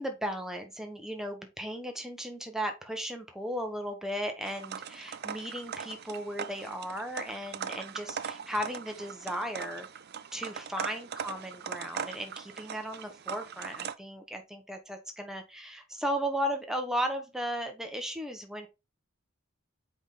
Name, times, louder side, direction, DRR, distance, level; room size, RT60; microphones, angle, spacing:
voice 1, 0.0-9.9 10.3-18.7, equal, ahead, 4 dB, 1.2 m, -36 dB
sound 1, 4.4-13.9, right 7 dB, 50° right, 0.5 m, -40 dB
6.4 x 5.0 x 3.7 m, 0.25 s
head